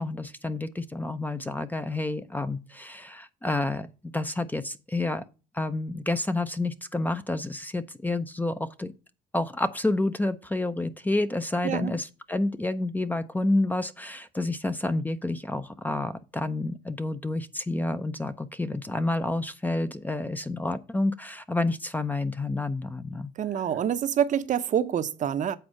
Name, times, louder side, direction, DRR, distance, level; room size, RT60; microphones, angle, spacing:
voice 1, 0.0-3.9 4.1-5.2 5.5-8.9 9.3-23.3, left 2 dB, 10° left, 0.5 m, -29 dB
voice 2, 23.4-25.6, right 9 dB, 50° right, 0.7 m, -26 dB
8.0 x 4.2 x 6.3 m
cardioid pair, 110°, 17 cm